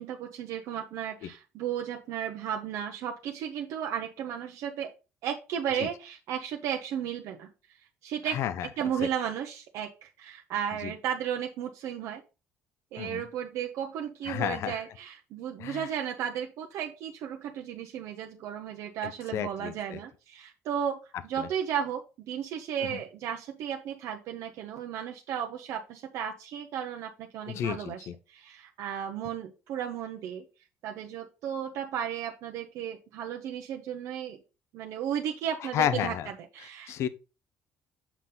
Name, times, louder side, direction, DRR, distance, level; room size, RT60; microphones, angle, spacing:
voice 1, 0.0-4.9 5.2-7.5 8.0-8.4 8.8-12.2 12.9-21.0 21.2-28.0 28.3-30.4 30.8-34.4 34.7-36.1 36.5-37.1, right 9 dB, 65° right, 1.0 m, -34 dB
voice 2, 8.3-8.7 10.8-10.9 13.0-13.2 14.3-14.8 15.6-15.9 19.0-20.0 21.4-21.5 22.8-23.0 27.5-28.1 35.6-36.3 36.9-37.1, left 10 dB, 55° left, 0.7 m, -32 dB
7.2 x 5.7 x 3.9 m
cardioid pair, 145°, 5 cm